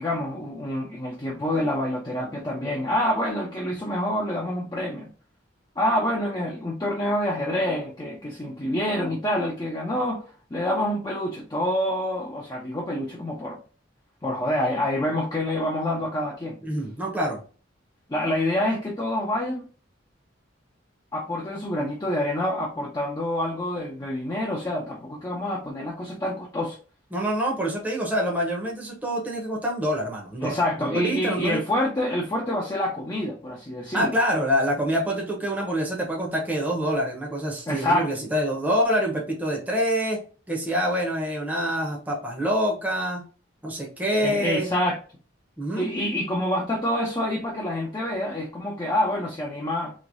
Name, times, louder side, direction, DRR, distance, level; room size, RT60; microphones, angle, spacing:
voice 1, 0.0-5.1 5.8-13.6 14.2-16.6 18.1-19.6 21.1-26.8 30.4-34.1 37.7-38.1 44.2-45.0 45.8-49.9, left 1 dB, 20° left, 0.5 m, -27 dB
voice 2, 16.6-17.4 27.1-31.6 33.9-40.2 40.5-43.2 43.6-44.7 45.6-45.9, equal, 10° right, 0.8 m, -26 dB
3.0 x 2.7 x 2.6 m
head